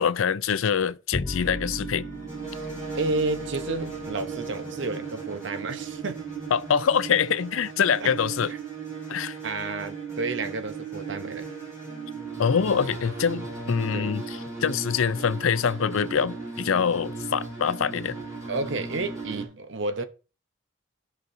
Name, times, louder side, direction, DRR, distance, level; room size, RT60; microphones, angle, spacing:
voice 1, 0.0-2.0 6.5-8.5 9.1-9.4 12.4-18.2, left 7 dB, 75° left, 0.5 m, -25 dB
Bowed string instrument, 1.1-7.6, left 2 dB, 20° left, 0.4 m, -40 dB
sound 1, 1.2-19.5, right 5 dB, 15° right, 5.7 m, -36 dB
voice 2, 3.0-6.2 8.0-8.1 8.5-8.6 9.4-11.5 13.9-14.1 18.5-20.0, right 2 dB, 60° right, 0.8 m, -31 dB
15.5 x 6.1 x 2.6 m
head